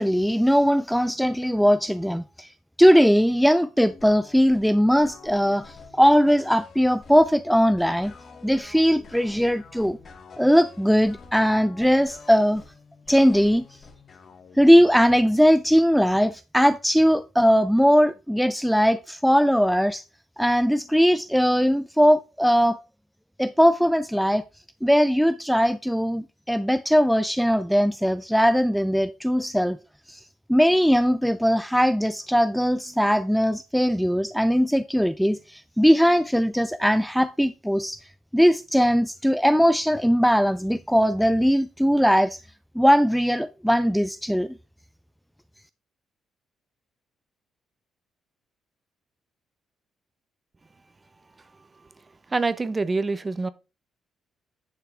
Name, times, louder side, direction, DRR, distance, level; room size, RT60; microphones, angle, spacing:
voice 1, 0.0-2.5 2.8-8.1 8.4-10.0 10.4-12.6 13.1-13.6 14.6-20.0 20.4-22.8 23.4-24.4 24.8-29.8 30.1-30.2 30.5-38.0 38.3-42.4 42.8-44.5, equal, ahead, 0.4 m, -20 dB
sound 1, 3.8-15.3, left 4 dB, 50° left, 2.1 m, -47 dB
voice 2, 51.4-53.5, right 3 dB, 25° right, 0.8 m, -28 dB
10.5 x 5.7 x 3.4 m
cardioid pair, 90°, 0 cm